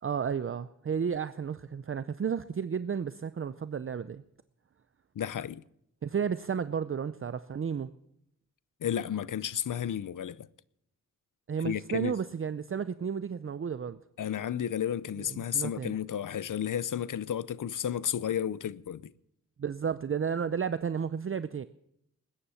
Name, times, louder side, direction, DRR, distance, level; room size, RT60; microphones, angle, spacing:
voice 1, 0.0-4.2 6.0-7.9 11.5-14.0 15.3-16.0 19.6-21.7, right 7 dB, 40° right, 0.5 m, -32 dB
voice 2, 5.2-5.6 8.8-10.5 11.6-12.2 14.2-19.1, left 9 dB, 70° left, 0.6 m, -32 dB
20.0 x 9.9 x 5.7 m
wide cardioid pair, 110°, 32 cm